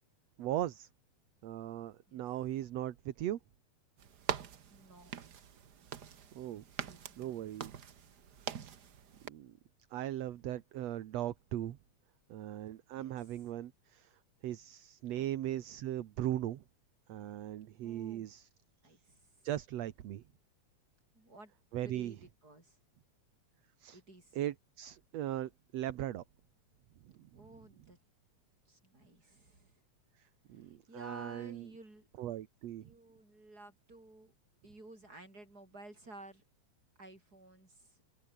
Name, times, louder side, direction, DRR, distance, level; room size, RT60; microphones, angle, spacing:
voice 1, 0.4-0.9 1.4-3.4 6.4-6.6 7.2-7.7 8.5-8.8 9.2-9.6 9.9-11.8 12.3-14.1 14.4-16.6 17.1-18.5 19.4-20.2 21.7-22.2 23.8-24.0 24.3-26.2 27.2-27.3 30.5-31.7 32.2-32.9, right 12 dB, 65° right, 2.2 m, -38 dB
sound 1, 4.0-9.3, right 8 dB, 45° right, 1.4 m, -43 dB
voice 2, 4.7-5.1 6.9-7.3 12.9-13.2 15.2-15.3 17.8-18.3 18.8-19.4 21.1-22.8 23.9-24.4 27.3-28.0 28.7-29.8 30.5-32.1 32.8-34.3 34.6-36.4 37.0-38.0, right 2 dB, 30° right, 7.8 m, -54 dB
open air
omnidirectional pair, 3.4 m